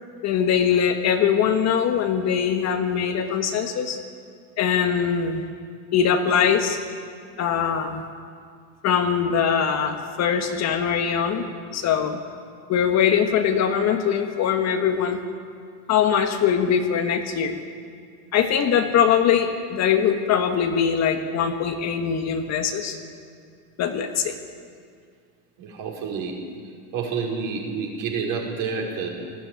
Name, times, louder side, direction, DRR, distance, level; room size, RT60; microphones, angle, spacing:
voice 1, 0.2-4.0 4.6-5.4 5.9-6.8 7.4-8.0 8.8-11.5 11.7-12.2 12.7-15.2 15.9-17.6 18.3-23.0 23.8-24.4, left 7 dB, 35° left, 6 dB, 1.4 m, -22 dB
voice 2, 25.6-26.4 26.9-29.1, right 5 dB, 45° right, -1 dB, 5.1 m, -28 dB
19.0 x 15.0 x 9.3 m, 2.2 s
supercardioid pair, 135°, 44 cm